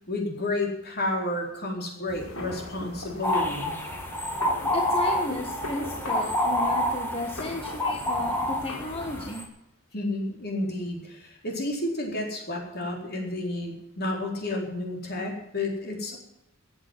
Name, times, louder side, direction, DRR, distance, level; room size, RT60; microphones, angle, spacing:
voice 1, 0.1-3.8 9.9-16.2, left 2 dB, 50° left, 1 dB, 4.3 m, -31 dB
sound 1, 2.1-9.3, left 2 dB, 80° left, 3.5 m, -40 dB
sound 2, 3.2-9.4, left 1 dB, 10° left, 2.2 m, -28 dB
voice 2, 4.7-9.5, left 2 dB, 25° left, 2 dB, 1.4 m, -34 dB
14.5 x 9.0 x 9.1 m, 0.82 s
head